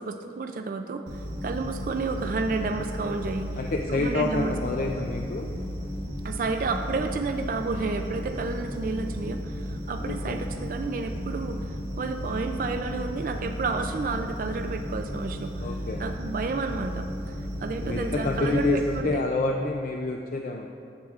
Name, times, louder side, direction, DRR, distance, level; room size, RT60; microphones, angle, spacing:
voice 1, 0.0-3.6 3.9-4.5 6.2-11.6 12.0-19.2, right 4 dB, 50° right, 6 dB, 0.3 m, -31 dB
sound 1, 1.1-19.0, equal, 80° right, 1.3 m, -34 dB
voice 2, 3.6-5.5 10.0-10.4 15.6-16.0 17.8-20.7, left 2 dB, 50° left, 1 dB, 0.3 m, -28 dB
10.5 x 7.5 x 2.4 m, 2.5 s
head